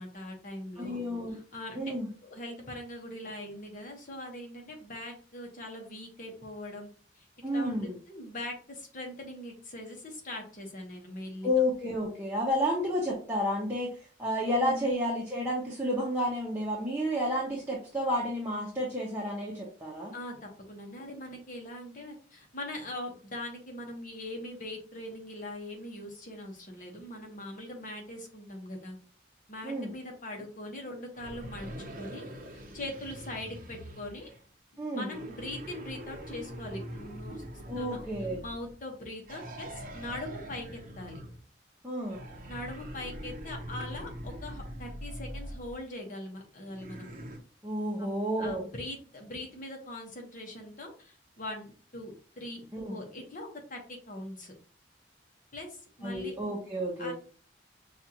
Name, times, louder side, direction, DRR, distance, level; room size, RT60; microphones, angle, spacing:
voice 1, 0.0-1.0 1.3-1.9 2.2-6.9 7.1-7.3 7.5-11.5 14.6-14.9 20.1-29.0 29.5-31.7 32.0-34.3 34.9-37.4 37.8-38.0 38.4-41.2 42.5-47.1 48.0-48.1 48.4-54.5 55.5-56.4 57.0-57.1, left 1 dB, 45° left, 2 dB, 1.1 m, -41 dB
voice 2, 0.8-1.4 1.7-2.1 7.4-8.0 11.4-13.9 14.2-20.1 29.6-29.9 34.8-35.1 37.7-38.4 41.8-42.2 47.6-48.6 52.7-53.0 56.0-57.1, equal, 10° right, -4 dB, 0.8 m, -31 dB
sound 1, 31.1-34.4 35.1-38.8 39.2-41.5 42.1-45.8 46.7-47.4, equal, 50° right, 0.7 m, -43 dB
5.6 x 2.4 x 2.8 m, 0.40 s
head